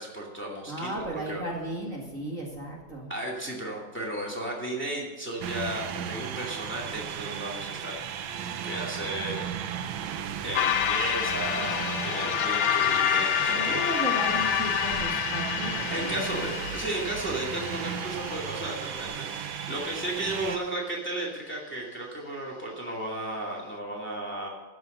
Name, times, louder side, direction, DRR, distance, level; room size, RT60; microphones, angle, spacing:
voice 1, 0.0-1.4 3.1-7.9 8.6-9.5 10.4-13.8 15.9-24.5, right 1 dB, 5° left, -3 dB, 2.2 m, -34 dB
voice 2, 0.7-3.1 13.5-16.6, right 1 dB, 40° right, -2 dB, 2.2 m, -35 dB
sound 1, 5.4-20.6, right 8 dB, 80° right, 1.4 m, -35 dB
sound 2, 10.5-19.0, left 10 dB, 80° left, 1.5 m, -28 dB
13.5 x 6.3 x 6.6 m, 1.3 s
omnidirectional pair, 2.2 m